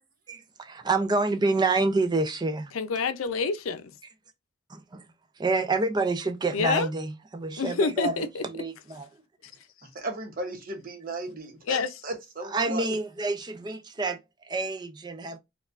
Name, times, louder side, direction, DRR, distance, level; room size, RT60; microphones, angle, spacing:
voice 1, 0.3-2.7 4.7-5.1 5.4-9.1 12.5-15.4, right 3 dB, 20° right, 0.4 m, -28 dB
voice 2, 2.7-3.9 6.5-6.9 7.6-8.4 11.7-11.9, left 5 dB, 85° left, 0.5 m, -27 dB
voice 3, 9.9-12.9, right 2 dB, 45° right, 0.9 m, -36 dB
4.4 x 2.3 x 2.4 m
head